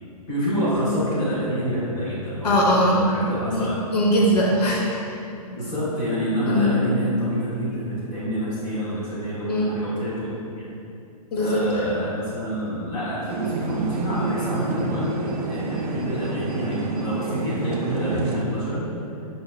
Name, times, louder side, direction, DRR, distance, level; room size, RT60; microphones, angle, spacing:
voice 1, 0.3-2.6 2.9-3.8 5.5-10.7 11.4-15.1 15.5-18.8, equal, 10° left, -8 dB, 0.4 m, -27 dB
voice 2, 2.4-3.0 3.5-5.2 6.5-6.8 9.5-9.8 11.3-11.8, equal, 80° left, -2 dB, 0.7 m, -21 dB
sound 1, 13.3-18.4, right 3 dB, 75° right, 0.4 m, -29 dB
5.0 x 2.1 x 2.3 m, 2.6 s
hypercardioid pair, 170°, 20 cm